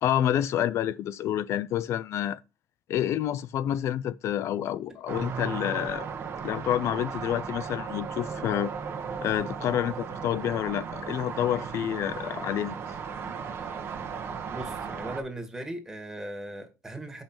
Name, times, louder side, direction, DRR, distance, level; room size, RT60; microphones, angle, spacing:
voice 1, 0.0-2.4 2.9-6.1 6.4-8.7 9.2-12.8, left 11 dB, 65° left, 0.4 m, -28 dB
sound 1, 5.1-15.2, right 6 dB, 50° right, 1.2 m, -36 dB
voice 2, 14.5-17.2, right 1 dB, 10° right, 1.8 m, -38 dB
7.2 x 5.5 x 4.4 m
cardioid pair, 145°, 5 cm